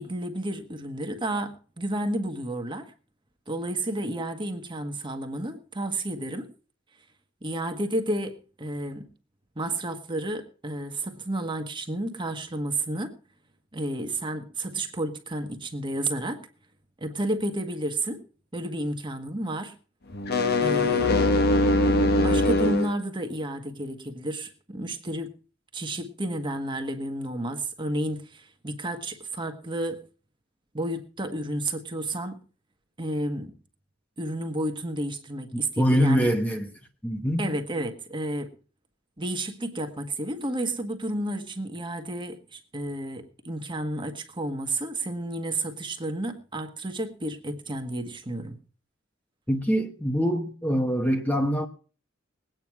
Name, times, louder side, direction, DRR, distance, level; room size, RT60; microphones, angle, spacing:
voice 1, 0.0-2.9 3.5-6.5 7.4-9.1 9.5-13.1 13.7-16.5 17.0-18.2 18.5-19.7 20.6-21.1 21.8-25.3 25.7-30.0 30.7-32.4 33.0-33.5 34.2-36.3 37.4-38.5 39.2-48.6, right 1 dB, 25° right, 1.5 m, -31 dB
sound 1, 20.1-22.9, left 2 dB, 55° left, 1.3 m, -22 dB
voice 2, 35.5-36.7 37.0-37.5 49.5-51.7, equal, 10° left, 1.1 m, -24 dB
20.0 x 9.2 x 4.7 m
head